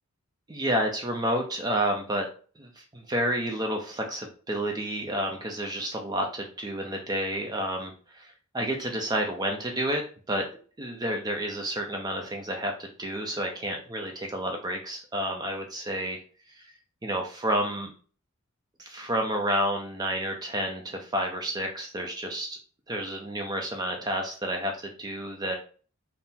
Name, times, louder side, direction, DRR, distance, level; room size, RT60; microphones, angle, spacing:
voice 1, 0.5-2.3 2.6-10.5 10.8-16.2 16.5-16.7 17.0-17.9 18.8-22.6 22.9-25.6, right 1 dB, 20° right, 2 dB, 0.5 m, -30 dB
3.7 x 2.0 x 4.1 m, 0.39 s
head